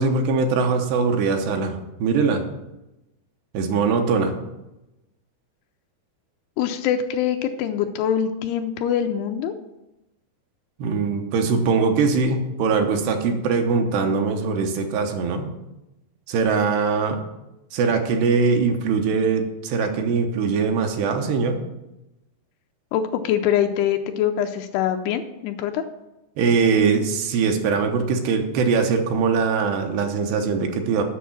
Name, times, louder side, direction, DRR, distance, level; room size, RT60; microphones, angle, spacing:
voice 1, 0.0-2.4 3.5-4.4 10.8-15.5 16.3-17.2 17.7-21.6 26.4-31.0, right 5 dB, 80° right, 4 dB, 3.0 m, -22 dB
voice 2, 6.6-9.5 22.9-25.8, left 9 dB, 85° left, 6 dB, 2.4 m, -24 dB
8.3 x 6.2 x 7.3 m, 0.95 s
omnidirectional pair, 4.9 m